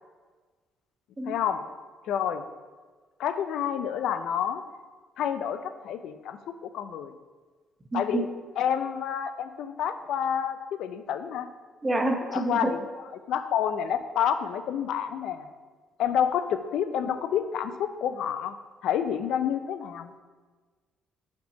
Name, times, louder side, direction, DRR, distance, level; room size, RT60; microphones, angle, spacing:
voice 1, 1.3-1.6 2.1-2.4 3.2-4.6 5.2-7.1 7.9-8.3 8.6-11.5 12.3-12.9 13.3-15.5 16.0-18.6 18.8-20.1, left 8 dB, 75° left, 11 dB, 0.4 m, -29 dB
voice 2, 7.9-8.2 11.8-12.7, right 2 dB, 15° right, 4 dB, 0.8 m, -27 dB
5.5 x 4.4 x 5.2 m, 1.4 s
cardioid pair, 115°, 0 cm